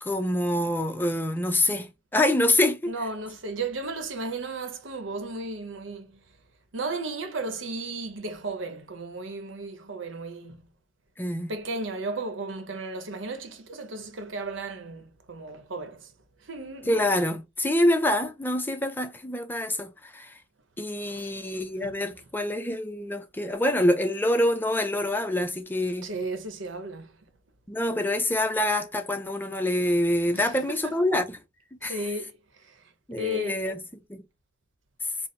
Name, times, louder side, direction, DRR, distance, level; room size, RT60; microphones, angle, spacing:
voice 1, 0.0-2.9 11.2-11.5 16.9-20.3 20.8-26.1 27.7-31.4 31.8-32.0 33.1-33.8 34.1-34.2, left 1 dB, 10° left, 0.4 m, -26 dB
voice 2, 2.9-6.2 6.7-10.6 11.5-16.1 16.4-16.9 21.0-21.5 21.8-22.0 26.0-27.1 30.3-31.0 31.8-32.4 32.6-32.8 33.1-33.6, right 2 dB, 85° right, 0.9 m, -34 dB
4.0 x 2.0 x 4.0 m
head